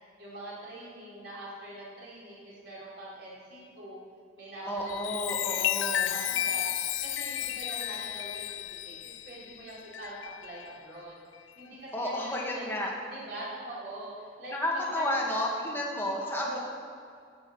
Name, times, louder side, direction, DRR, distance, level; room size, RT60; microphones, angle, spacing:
voice 1, 0.2-4.0 4.3-11.2 11.6-12.6 13.0-15.3 16.2-16.6, right 1 dB, 60° right, -8 dB, 4.0 m, -43 dB
voice 2, 4.7-6.2 11.9-12.9 14.5-16.6, left 1 dB, 10° left, -3 dB, 1.9 m, -31 dB
Chime, 4.8-10.8 11.3-11.6, left 12 dB, 80° left, 0.5 m, -33 dB
11.0 x 8.4 x 7.9 m, 2.2 s
head